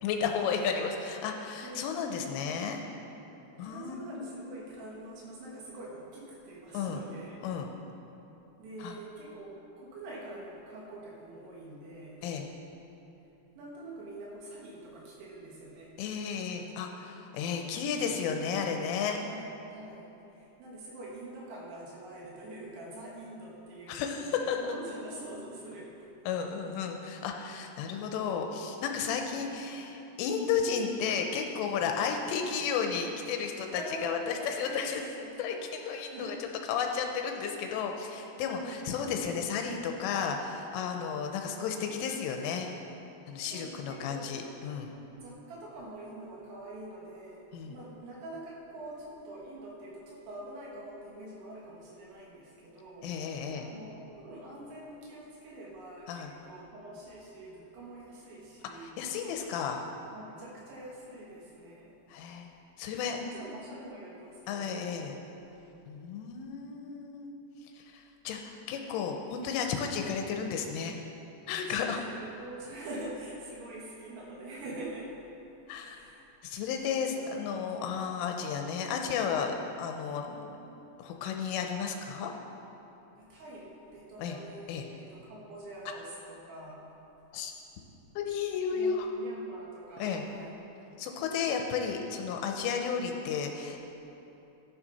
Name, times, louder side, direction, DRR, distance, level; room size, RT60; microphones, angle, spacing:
voice 1, 0.0-2.8 3.6-4.3 6.7-7.0 7.4-7.7 8.8-8.9 12.2-12.5 16.0-19.2 23.9-24.6 26.3-35.0 35.4-36.4 36.7-42.7 43.3-45.0 47.5-47.7 53.0-53.7 56.1-56.3 58.8-59.9 62.1-62.5 62.8-63.2 64.5-65.2 65.9-67.3 67.7-71.0 71.5-72.0 75.7-76.0 76.4-80.6 81.0-82.3 84.2-84.4 84.7-84.8 87.3-87.5 88.2-89.1 90.0-90.2 91.0-93.9, left 6 dB, 85° left, 3 dB, 3.1 m, -33 dB
voice 2, 1.6-1.9 3.6-7.5 8.6-12.2 13.6-15.9 19.2-26.1 29.3-29.5 33.7-35.3 36.1-36.5 38.5-39.0 43.4-44.3 45.2-59.0 60.1-61.9 63.1-64.9 68.8-69.1 69.5-69.6 71.7-75.2 75.8-76.2 76.8-78.1 83.2-86.8 87.8-88.1 88.7-90.5, right 1 dB, 70° right, -4 dB, 3.9 m, -45 dB
14.0 x 9.9 x 4.2 m, 2.9 s
omnidirectional pair, 5.9 m